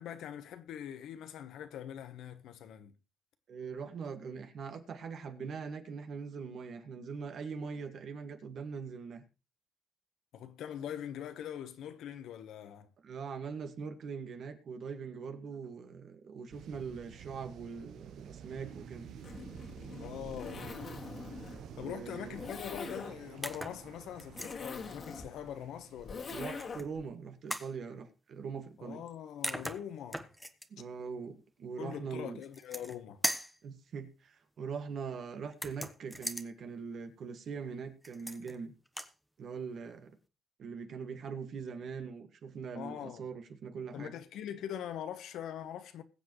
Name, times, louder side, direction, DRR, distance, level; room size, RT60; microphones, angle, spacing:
voice 1, 0.0-2.9 10.3-12.9 20.0-20.9 21.8-26.3 28.8-30.2 31.8-33.2 42.7-43.2 43.9-46.0, left 10 dB, 80° left, 1.1 m, -43 dB
voice 2, 3.5-9.2 13.0-19.1 21.8-22.4 26.3-29.0 30.7-32.4 33.6-38.7 39.4-40.2 40.6-44.1, right 5 dB, 60° right, 1.9 m, -42 dB
sound 1, 16.5-26.9, right 8 dB, 80° right, 1.0 m, -50 dB
Zipper (clothing), 19.1-27.1, left 4 dB, 50° left, 2.2 m, -44 dB
sound 2, 23.4-23.8 24.2-24.6 26.3-26.9 27.5-27.7 29.1-29.2 29.4-30.7 32.4-33.0 33.2-33.6 35.5-36.5 38.0-38.6 38.9-39.1, equal, ahead, 1.1 m, -38 dB
21.5 x 7.5 x 3.2 m
cardioid pair, 90°, 0 cm